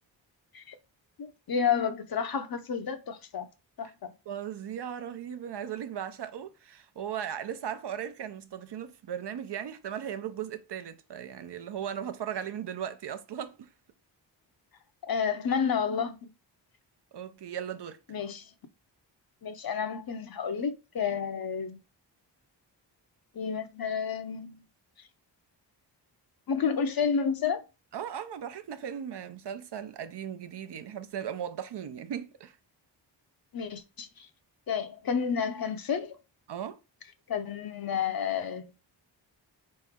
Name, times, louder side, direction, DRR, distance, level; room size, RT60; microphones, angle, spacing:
voice 1, 1.2-3.5 3.8-4.1 15.1-16.3 18.1-18.4 19.4-21.8 23.3-24.6 26.5-27.6 33.5-34.3 34.7-36.2 37.3-38.7, left 6 dB, 55° left, 0.7 m, -30 dB
voice 2, 4.3-13.7 17.1-18.0 27.9-32.6 36.5-36.8, right 9 dB, 65° right, 0.7 m, -37 dB
4.2 x 3.2 x 3.6 m
cardioid pair, 85°, 44 cm